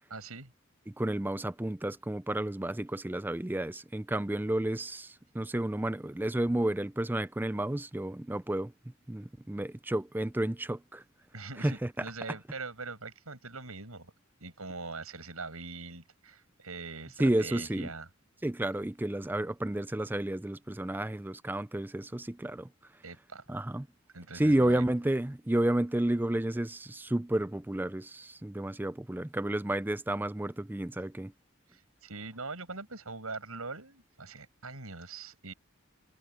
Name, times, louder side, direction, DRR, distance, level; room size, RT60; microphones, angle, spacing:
voice 1, 0.1-0.5 11.3-14.1 14.4-18.1 23.0-23.4 24.1-24.9 31.7-35.5, right 3 dB, 90° right, 7.5 m, -42 dB
voice 2, 0.9-8.7 9.1-11.0 11.6-11.9 17.2-17.9 18.4-22.7 23.5-23.9 24.3-31.3, right 1 dB, 10° right, 0.4 m, -31 dB
head